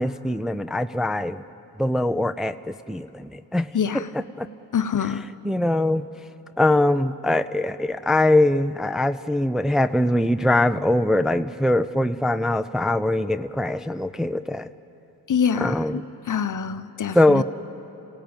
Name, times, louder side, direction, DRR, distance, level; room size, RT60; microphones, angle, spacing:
voice 1, 0.0-1.4 1.8-3.8 4.1-4.5 5.4-6.1 6.6-14.7 15.6-16.1 17.1-17.4, left 1 dB, ahead, 9 dB, 0.6 m, -22 dB
voice 2, 3.7-4.1 4.7-5.2 15.3-16.0 16.3-17.4, left 7 dB, 45° left, 11 dB, 1.1 m, -25 dB
28.0 x 17.0 x 8.9 m, 3.0 s
cardioid pair, 65°, 41 cm